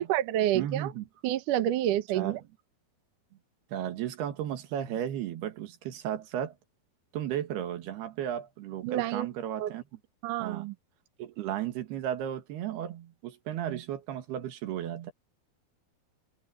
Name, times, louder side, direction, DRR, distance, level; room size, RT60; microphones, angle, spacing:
voice 1, 0.0-0.9 1.2-2.4 8.8-9.3 9.6-9.7 10.2-10.7, right 12 dB, 65° right, 2.4 m, -28 dB
voice 2, 0.5-1.1 2.1-2.4 3.7-6.5 7.1-9.8 10.4-10.7 11.2-15.1, right 10 dB, 85° right, 3.7 m, -34 dB
omnidirectional pair, 4.4 m